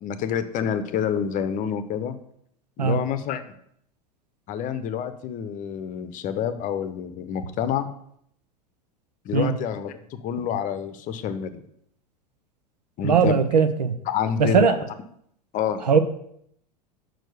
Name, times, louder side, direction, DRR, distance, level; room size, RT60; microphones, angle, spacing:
voice 1, 0.0-2.2 2.8-3.5 4.5-7.9 9.2-11.6 13.0-13.4 14.1-14.8 15.5-16.0, left 8 dB, 40° left, 12 dB, 0.7 m, -28 dB
voice 2, 13.0-14.0 14.4-14.8 15.8-16.0, right 6 dB, 85° right, 10 dB, 0.7 m, -19 dB
6.1 x 4.6 x 6.6 m, 0.69 s
hypercardioid pair, 90°, 21 cm